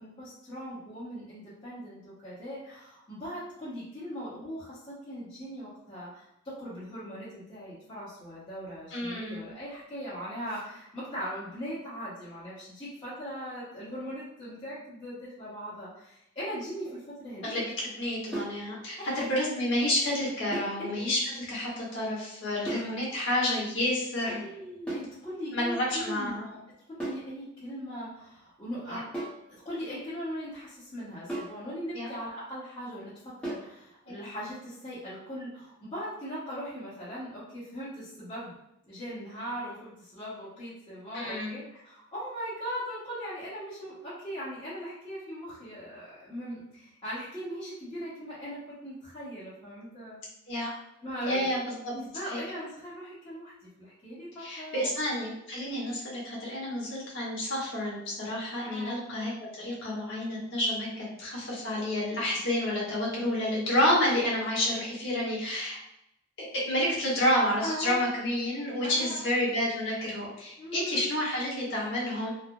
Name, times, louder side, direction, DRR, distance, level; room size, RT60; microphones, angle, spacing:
voice 1, 0.0-17.5 19.0-19.2 20.8-21.1 21.7-21.8 22.7-22.8 24.2-26.6 26.9-29.0 29.5-38.5 38.9-50.2 51.0-51.6 51.9-53.5 53.8-55.0 58.6-59.0 67.6-68.1 68.8-69.3 70.6-71.1, equal, 25° left, -13 dB, 1.0 m, -39 dB
voice 2, 8.9-9.5 17.4-17.6 18.0-24.4 25.5-26.4 28.9-29.0 31.9-32.1 41.1-41.6 50.5-50.7 51.2-51.9 52.3-52.4 54.4-59.3 59.6-65.8 66.5-72.3, left 1 dB, 65° left, -6 dB, 1.2 m, -29 dB
sound 1, 18.3-18.6 20.5-20.8 22.7-23.0 24.9-25.2 27.0-27.3 29.1-29.5 31.3-31.6 33.4-33.7, right 1 dB, 5° left, 0.9 m, -35 dB
3.2 x 2.1 x 2.4 m, 0.83 s
head